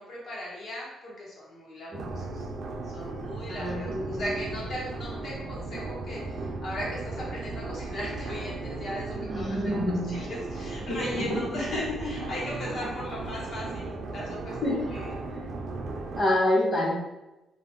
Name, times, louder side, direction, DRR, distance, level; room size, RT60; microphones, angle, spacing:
voice 1, 0.0-2.5 2.9-15.1, equal, 60° left, -4 dB, 1.0 m, -38 dB
sound 1, 1.9-16.2, right 3 dB, 65° right, 0.4 m, -36 dB
voice 2, 3.5-4.5 9.1-10.1 10.8-11.8 14.6-14.8 15.3-15.4 16.1-16.9, left 1 dB, 25° left, -4 dB, 1.0 m, -28 dB
2.3 x 2.1 x 3.1 m, 1.0 s
cardioid pair, 90°, 0 cm